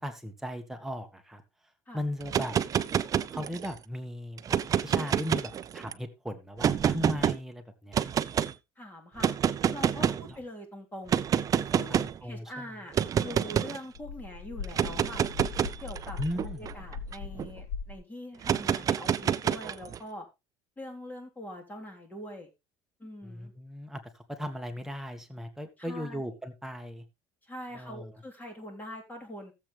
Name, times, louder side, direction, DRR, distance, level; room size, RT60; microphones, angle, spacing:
voice 1, 0.0-1.4 1.9-2.6 3.3-4.6 4.8-8.1 10.0-10.4 11.7-12.8 16.2-16.6 23.2-27.0 27.7-28.2, equal, 5° right, 5 dB, 1.7 m, -37 dB
sound 1, 2.2-3.8 4.4-5.9 6.6-7.4 7.9-8.5 9.2-10.3 11.1-12.2 12.9-13.8 14.6-17.5 18.4-20.0, right 8 dB, 35° right, 0.6 m, -28 dB
voice 2, 8.8-9.3 9.7-11.2 11.7-12.9 13.2-15.3 15.8-16.2 16.4-20.3 20.8-22.5 23.0-23.5 25.8-26.2 27.4-29.5, left 1 dB, 15° left, 2 dB, 3.6 m, -43 dB
sound 2, 13.9-18.0, left 5 dB, 80° left, 3.1 m, -39 dB
14.5 x 7.8 x 3.3 m, 0.24 s
cardioid pair, 125°, 10 cm